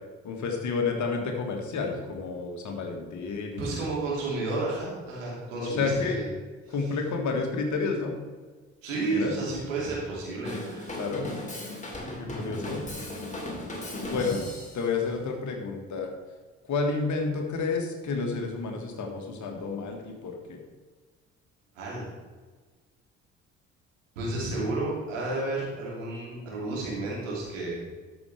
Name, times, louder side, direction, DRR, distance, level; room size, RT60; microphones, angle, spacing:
voice 1, 0.2-3.8 5.6-6.2 6.7-8.1 9.1-9.4 11.0-11.3 12.2-12.8 14.0-14.5 14.7-16.1 16.7-20.6, left 4 dB, 50° left, 3 dB, 1.8 m, -30 dB
voice 2, 3.6-6.3 6.7-6.8 8.8-11.0 21.7-22.1 24.2-27.8, right 2 dB, 80° right, -5 dB, 2.8 m, -31 dB
Drum kit / Drum, 10.4-14.9, left 1 dB, 20° left, 2.7 m, -36 dB
13.0 x 6.2 x 3.4 m, 1.4 s
figure-of-eight pair, 50°, 38 cm